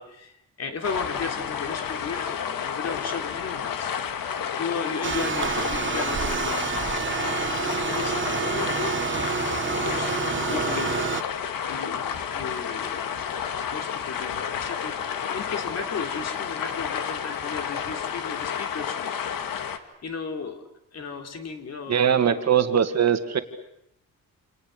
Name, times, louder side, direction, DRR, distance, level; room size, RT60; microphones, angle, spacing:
voice 1, 0.0-3.9 4.6-6.7 7.2-11.2 11.7-13.4 13.7-20.6 20.9-22.4, left 5 dB, 45° left, 5 dB, 3.4 m, -36 dB
sound 1, 0.8-19.8, left 8 dB, 75° left, 1.9 m, -31 dB
sound 2, 5.0-11.2, right 7 dB, 35° right, 1.1 m, -28 dB
voice 2, 21.9-23.4, right 8 dB, 50° right, 9 dB, 2.0 m, -21 dB
28.5 x 28.0 x 6.8 m, 0.80 s
cardioid pair, 140°, 34 cm